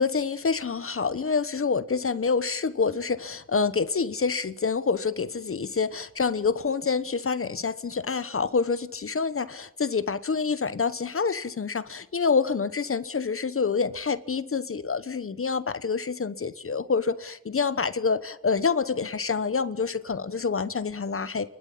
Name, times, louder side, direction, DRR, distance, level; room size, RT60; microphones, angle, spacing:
voice 1, 0.0-21.5, left 5 dB, 40° left, 13 dB, 1.1 m, -27 dB
30.0 x 12.5 x 7.4 m, 0.80 s
cardioid pair, 80°, 33 cm